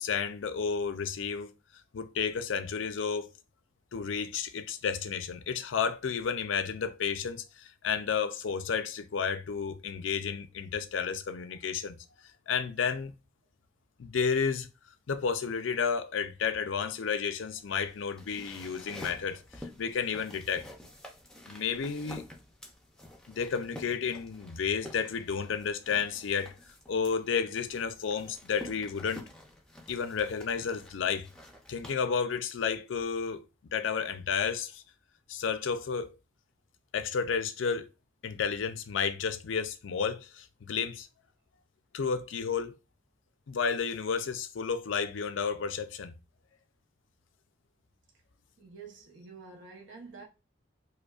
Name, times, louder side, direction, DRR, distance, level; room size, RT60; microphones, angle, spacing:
voice 1, 0.0-1.5 1.9-3.3 3.9-12.0 12.5-13.2 14.0-14.7 15.1-19.4 19.8-20.7 21.5-22.2 23.3-26.5 26.9-29.2 29.9-31.3 31.7-33.4 33.7-34.8 35.3-36.1 36.9-37.9 38.2-41.1 41.9-42.8 43.5-46.1, left 6 dB, 75° left, 0.5 m, -31 dB
sound 1, 17.6-31.9, left 1 dB, 5° left, 0.5 m, -49 dB
voice 2, 48.6-50.2, right 4 dB, 70° right, 0.8 m, -48 dB
4.9 x 2.2 x 2.4 m
head